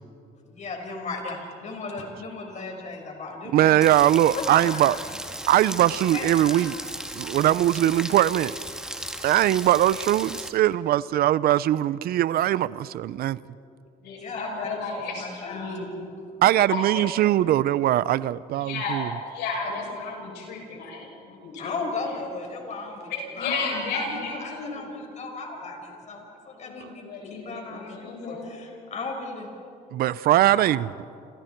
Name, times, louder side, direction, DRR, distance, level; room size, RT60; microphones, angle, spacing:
voice 1, 0.4-3.9 4.3-5.2 5.8-6.7 14.1-16.1 16.9-17.1 20.7-20.8 21.6-26.2 26.6-29.5 30.2-30.7, left 3 dB, 45° left, 5.6 m, -36 dB
voice 2, 3.5-5.0 5.5-6.8 7.1-8.5 9.2-13.4 16.4-19.1 29.9-30.9, right 13 dB, 65° right, 0.6 m, -21 dB
Rain, 3.8-10.5, right 1 dB, 5° right, 1.9 m, -36 dB
voice 3, 7.3-7.6 14.0-15.9 16.7-17.0 18.6-21.7 23.1-24.9 26.6-26.8 27.1-28.5, left 3 dB, 80° left, 7.5 m, -33 dB
29.0 x 29.0 x 4.6 m
cardioid pair, 110°, 17 cm